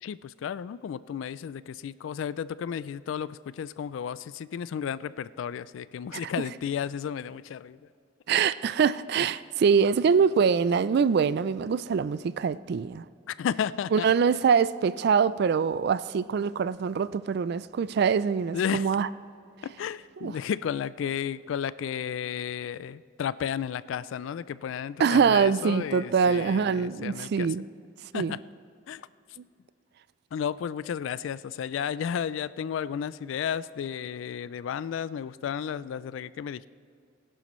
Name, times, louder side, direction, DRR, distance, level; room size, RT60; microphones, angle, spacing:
voice 1, 0.0-7.9 13.3-14.1 18.5-18.9 19.6-27.5 28.1-28.4 28.9-29.1 30.3-36.7, left 8 dB, 75° left, 0.3 m, -33 dB
voice 2, 8.3-13.0 13.9-19.1 20.2-20.3 25.0-27.7 28.1-28.4, right 6 dB, 55° right, 0.3 m, -24 dB
19.5 x 11.0 x 3.1 m
head